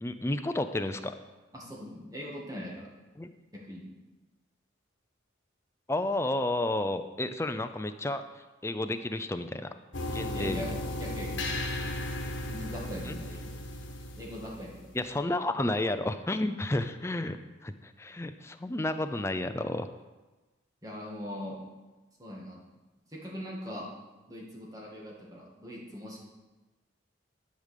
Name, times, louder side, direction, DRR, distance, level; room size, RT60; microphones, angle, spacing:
voice 1, 0.0-1.2 3.2-3.3 5.9-8.2 8.6-9.7 10.1-10.6 13.0-13.1 14.9-19.9, left 2 dB, 15° left, 9 dB, 0.4 m, -31 dB
voice 2, 1.5-2.9 3.5-3.9 10.3-11.5 12.5-13.5 14.2-15.0 20.8-21.6 22.2-22.6 23.1-23.9 24.3-26.2, equal, 20° right, -3 dB, 2.0 m, -41 dB
sound 1, 9.9-15.1, left 1 dB, 70° left, 1.7 m, -35 dB
11.5 x 5.2 x 6.6 m, 1.2 s
head